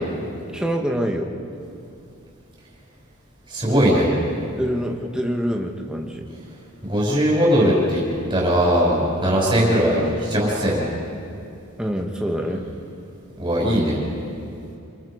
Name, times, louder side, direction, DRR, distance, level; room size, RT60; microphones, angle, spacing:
voice 1, 0.5-1.3 4.1-6.3 9.6-9.8 11.8-12.7, equal, 5° right, 1 dB, 1.5 m, -26 dB
voice 2, 3.5-4.1 6.8-8.0 8.3-10.8 13.4-14.0, equal, 20° right, -4 dB, 6.2 m, -19 dB
27.5 x 24.5 x 5.2 m, 2.6 s
head